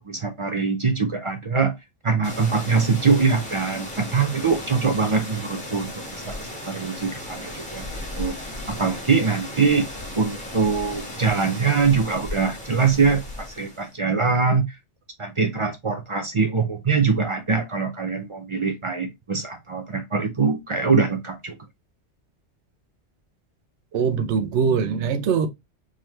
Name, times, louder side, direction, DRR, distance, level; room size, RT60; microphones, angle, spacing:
voice 1, 0.1-1.7 2.0-7.9 8.2-8.3 8.7-9.9 10.1-14.7 15.2-21.5, right 5 dB, 45° right, 0.4 m, -23 dB
sound 1, 2.2-13.9, left 1 dB, 5° left, 1.1 m, -36 dB
voice 2, 23.9-25.5, right 6 dB, 90° right, 1.0 m, -22 dB
3.7 x 2.8 x 3.1 m
omnidirectional pair, 1.1 m